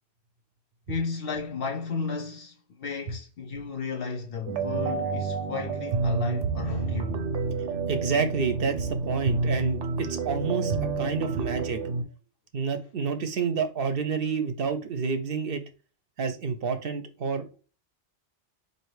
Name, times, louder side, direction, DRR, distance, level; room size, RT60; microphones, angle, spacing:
voice 1, 0.9-7.2, left 5 dB, 65° left, 0.7 m, -34 dB
sound 1, 4.5-12.0, right 4 dB, 85° right, 0.9 m, -29 dB
voice 2, 7.9-11.8 12.5-15.6 16.2-17.5, right 5 dB, 60° right, 0.7 m, -29 dB
4.4 x 2.6 x 3.1 m
omnidirectional pair, 1.2 m